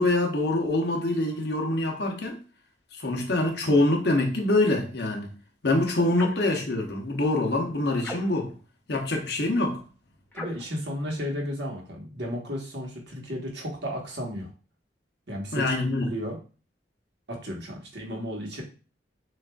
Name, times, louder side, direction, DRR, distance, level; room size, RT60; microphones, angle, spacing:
voice 1, 0.0-2.4 3.0-5.3 5.6-8.5 8.9-9.8 15.5-16.1, left 2 dB, 60° left, 0.9 m, -25 dB
sound 1, 6.1-6.5 8.0-8.6 10.3-10.7, left 1 dB, 10° left, 0.6 m, -39 dB
voice 2, 10.3-14.5 15.3-16.4 17.3-18.6, equal, 65° right, 1.2 m, -34 dB
6.3 x 2.6 x 2.3 m
head